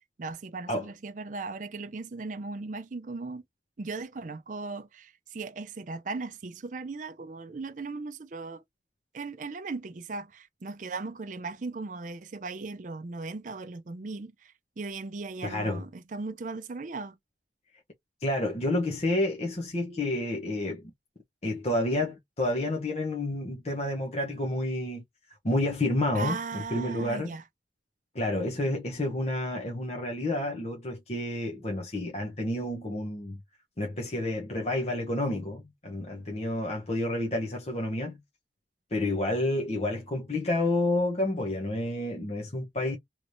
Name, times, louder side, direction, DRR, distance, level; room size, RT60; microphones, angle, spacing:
voice 1, 0.2-3.4 3.8-8.6 9.1-14.3 14.8-17.1 26.1-27.4, right 3 dB, 45° right, 0.5 m, -37 dB
voice 2, 15.4-15.8 18.2-20.8 21.4-25.0 25.4-27.3 28.1-33.4 33.8-38.2 38.9-43.0, left 1 dB, 35° left, 0.9 m, -29 dB
3.2 x 3.1 x 2.6 m
head